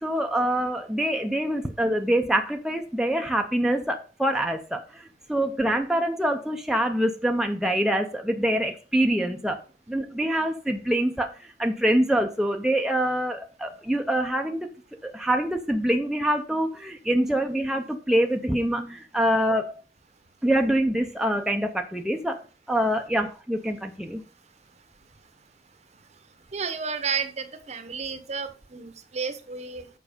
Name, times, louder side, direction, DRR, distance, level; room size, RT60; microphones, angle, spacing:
voice 1, 0.0-4.8 5.3-9.6 9.9-11.3 11.6-14.7 15.0-19.7 20.4-22.4 22.7-24.2, right 1 dB, 5° right, 3 dB, 0.6 m, -25 dB
voice 2, 26.5-29.9, right 5 dB, 40° right, 10 dB, 0.9 m, -32 dB
7.2 x 5.3 x 5.1 m, 0.36 s
head